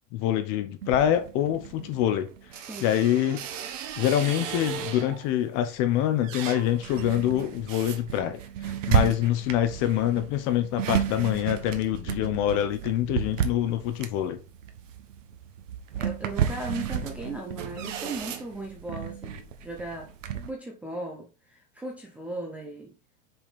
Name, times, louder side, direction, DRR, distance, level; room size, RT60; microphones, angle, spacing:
voice 1, 0.1-2.3 2.8-3.4 4.0-8.4 8.9-14.4, left 11 dB, 35° left, 0.9 m, -25 dB
sound 1, 0.8-5.3 5.8-20.5, right 9 dB, 90° right, 1.4 m, -33 dB
voice 2, 16.0-20.1 20.5-22.9, right 2 dB, 5° right, 0.6 m, -37 dB
6.0 x 5.4 x 4.2 m
supercardioid pair, 170°, 37 cm